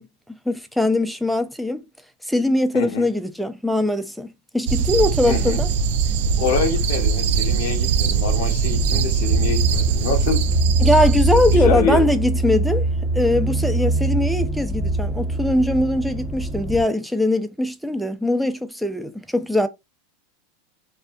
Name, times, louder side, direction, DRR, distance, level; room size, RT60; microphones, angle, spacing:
voice 1, 0.0-1.8 2.3-5.7 10.8-12.8 13.1-19.7, left 1 dB, ahead, 0.4 m, -21 dB
voice 2, 2.7-3.1 5.3-5.6 6.4-10.4 11.5-12.2, left 6 dB, 75° left, 0.7 m, -26 dB
sound 1, 4.7-11.6, right 6 dB, 70° right, 0.3 m, -21 dB
sound 2, 8.7-16.8, right 2 dB, 25° right, 0.9 m, -23 dB
2.5 x 2.2 x 2.4 m
hypercardioid pair, 115°, 0 cm